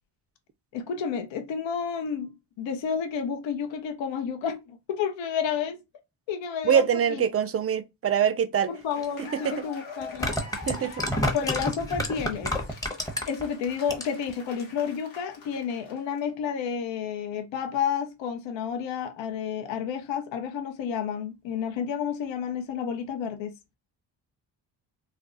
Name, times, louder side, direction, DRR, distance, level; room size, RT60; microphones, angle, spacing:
voice 1, 0.7-5.8 6.3-6.8 7.1-7.2 8.7-10.4 11.3-12.5 13.3-23.5, left 7 dB, 65° left, 0.6 m, -30 dB
voice 2, 6.6-8.7 9.2-9.6 10.5-11.0, right 8 dB, 30° right, 0.4 m, -24 dB
Cheering / Applause, 8.7-16.2, left 2 dB, 90° left, 0.9 m, -45 dB
sound 1, 9.0-9.1 10.0-13.5 13.8-14.3 14.6-14.7, left 1 dB, 10° left, 0.8 m, -28 dB
2.4 x 2.0 x 3.7 m
supercardioid pair, 55°, 48 cm